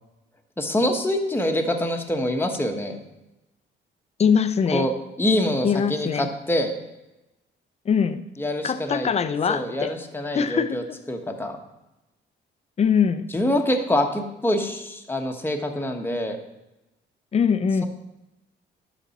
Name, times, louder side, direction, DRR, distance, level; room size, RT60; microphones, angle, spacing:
voice 1, 0.6-3.0 4.7-4.9 5.2-6.7 8.4-9.1 9.5-11.6 13.3-16.4, left 1 dB, 10° left, 3 dB, 1.1 m, -25 dB
voice 2, 4.2-4.9 5.6-6.3 7.9-8.2 8.6-9.9 10.3-11.0 12.8-13.3 17.3-17.9, left 6 dB, 35° left, 12 dB, 0.5 m, -22 dB
12.0 x 4.1 x 4.1 m, 0.97 s
cardioid pair, 90°, 20 cm